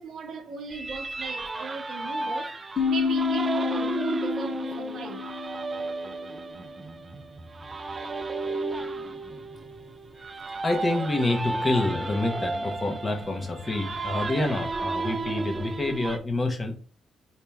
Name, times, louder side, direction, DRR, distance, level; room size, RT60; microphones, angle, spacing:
voice 1, 0.0-2.5 2.9-5.3, right 5 dB, 65° right, 0.8 m, -37 dB
sound 1, 0.7-16.2, right 3 dB, 30° right, 0.5 m, -33 dB
sound 2, 2.8-6.4, left 6 dB, 50° left, 0.5 m, -29 dB
voice 2, 10.6-16.8, left 2 dB, 30° left, 1.0 m, -27 dB
4.4 x 2.8 x 3.5 m
cardioid pair, 90°, 0 cm